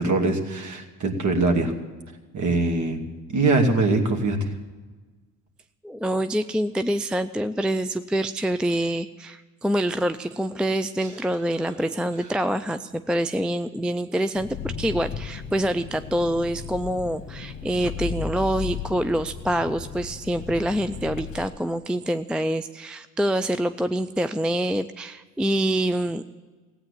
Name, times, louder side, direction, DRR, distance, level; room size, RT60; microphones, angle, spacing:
voice 1, 0.0-1.7 2.3-3.0 3.3-4.5, right 3 dB, 45° right, 4 dB, 2.6 m, -22 dB
voice 2, 5.8-26.2, right 1 dB, ahead, 11 dB, 0.4 m, -26 dB
Engine, 14.4-21.4, left 6 dB, 35° left, 1.5 m, -35 dB
16.0 x 9.0 x 8.4 m, 1.3 s
hypercardioid pair, 65°, 41 cm